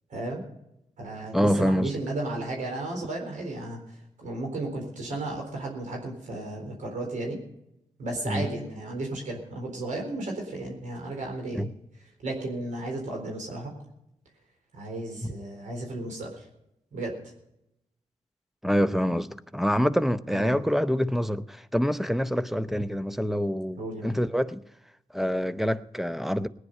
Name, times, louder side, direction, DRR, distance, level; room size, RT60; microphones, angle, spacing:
voice 1, 0.1-0.4 1.0-3.8 4.2-7.4 8.0-11.7 12.2-13.7 14.7-16.4 16.9-17.1 20.3-20.6 23.8-24.1, right 2 dB, 85° right, 4.1 m, -34 dB
voice 2, 1.3-1.9 8.3-8.5 11.5-11.7 18.6-24.6 25.1-26.5, equal, ahead, 0.7 m, -26 dB
18.5 x 9.7 x 5.4 m
cardioid pair, 80°, 13 cm